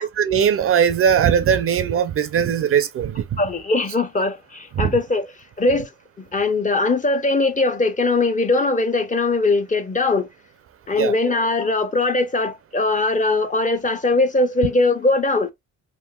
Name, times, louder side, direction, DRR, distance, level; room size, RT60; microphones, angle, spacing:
voice 1, 0.0-3.4 4.8-4.9 11.0-11.1, right 8 dB, 50° right, 0.5 m, -19 dB
voice 2, 3.4-5.3 5.6-5.9 6.2-10.3 10.9-15.5, left 2 dB, 25° left, 0.6 m, -20 dB
3.7 x 2.4 x 2.2 m
cardioid pair, 90°, 30 cm